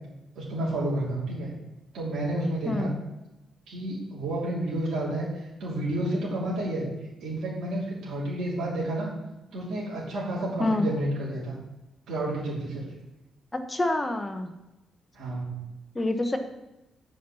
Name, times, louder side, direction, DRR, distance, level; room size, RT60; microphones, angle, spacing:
voice 1, 0.3-1.5 1.9-2.9 3.7-6.9 7.2-9.1 9.5-11.6 12.1-12.8 15.1-15.5, right 1 dB, 65° right, -7 dB, 3.2 m, -30 dB
voice 2, 13.5-14.5 15.9-16.4, left 2 dB, 15° left, 6 dB, 0.8 m, -27 dB
8.5 x 5.4 x 6.9 m, 0.98 s
cardioid pair, 170°, 0 cm